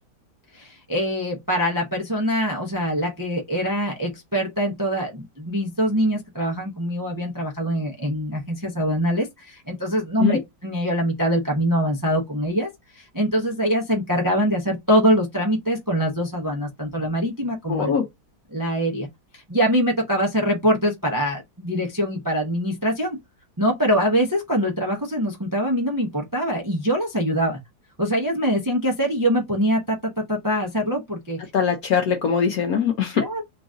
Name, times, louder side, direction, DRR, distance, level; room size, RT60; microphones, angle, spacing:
voice 1, 0.5-18.0 18.5-19.1 19.3-23.2 23.6-27.6 28.0-31.4 33.1-33.4, equal, 20° right, 0.5 m, -23 dB
voice 2, 17.7-18.0 31.5-33.2, left 7 dB, 65° left, 1.1 m, -21 dB
3.9 x 2.6 x 3.6 m
omnidirectional pair, 1.8 m